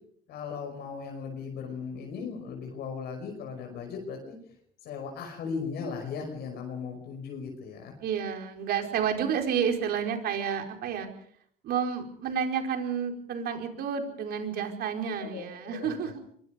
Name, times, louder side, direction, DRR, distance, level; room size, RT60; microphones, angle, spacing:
voice 1, 0.3-4.5 4.8-8.0 15.2-16.1, left 5 dB, 75° left, 2 dB, 5.7 m, -37 dB
voice 2, 8.0-11.1 11.6-16.2, right 7 dB, 70° right, 4 dB, 4.8 m, -30 dB
24.5 x 23.0 x 5.3 m, 0.64 s
cardioid pair, 110°, 17 cm